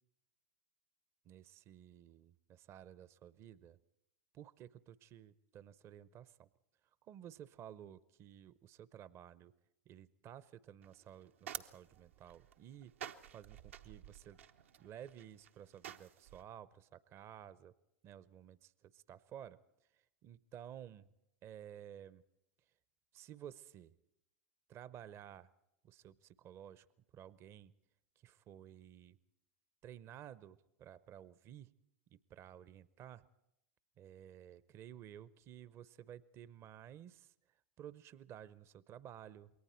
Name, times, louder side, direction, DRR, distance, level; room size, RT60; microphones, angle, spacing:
voice 1, 1.2-3.8 4.3-6.5 7.0-9.5 9.9-12.9 13.3-14.4 14.8-17.7 18.0-19.6 19.9-21.1 21.4-22.2 23.1-23.9 24.7-25.5 25.8-26.9 27.1-27.7 28.2-29.2 29.8-31.7 32.1-33.3 34.0-37.3 37.8-39.5, right 10 dB, 40° right, 18 dB, 0.7 m, -54 dB
sound 1, 10.8-16.4, right 10 dB, 75° right, 0.9 m, -51 dB
28.0 x 22.5 x 4.4 m, 0.84 s
hypercardioid pair, 95°, 7 cm